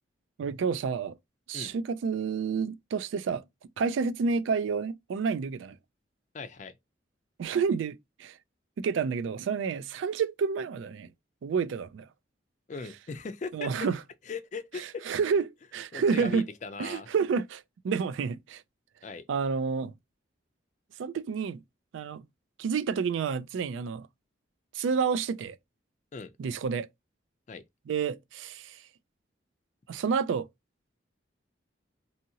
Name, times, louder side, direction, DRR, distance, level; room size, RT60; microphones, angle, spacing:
voice 1, 0.4-1.2 1.5-3.4 3.8-5.8 7.4-8.4 8.8-11.1 11.4-12.1 13.5-14.0 14.7-16.5 16.8-18.6 19.3-19.9 21.0-21.6 21.9-22.2 22.6-24.1 24.7-25.6 26.4-26.9 27.9-28.8 29.9-30.5, right 5 dB, 80° right, 0.3 m, -29 dB
voice 2, 6.3-6.8 12.7-13.7 14.3-15.0 15.9-17.1 19.0-19.3 26.1-26.3 27.5-27.6, left 4 dB, 40° left, 0.4 m, -39 dB
2.7 x 2.7 x 2.7 m
head